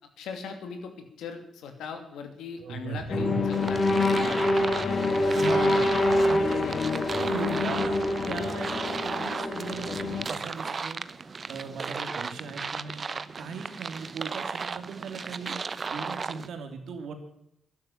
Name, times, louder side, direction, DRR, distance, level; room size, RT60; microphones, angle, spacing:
voice 1, 0.2-3.8 4.1-5.1 5.6-6.1 6.6-6.8, left 5 dB, 75° left, 6 dB, 2.8 m, -40 dB
voice 2, 2.6-3.4 5.2-6.7 7.2-11.0 11.5-13.1 13.4-15.6 15.9-17.1, right 5 dB, 70° right, 5 dB, 3.0 m, -38 dB
sound 1, 3.1-10.3, left 2 dB, 50° left, 2.2 m, -26 dB
sound 2, 3.5-16.5, right 5 dB, 45° right, 0.9 m, -35 dB
12.5 x 11.5 x 7.5 m, 0.75 s
hypercardioid pair, 45°, 0 cm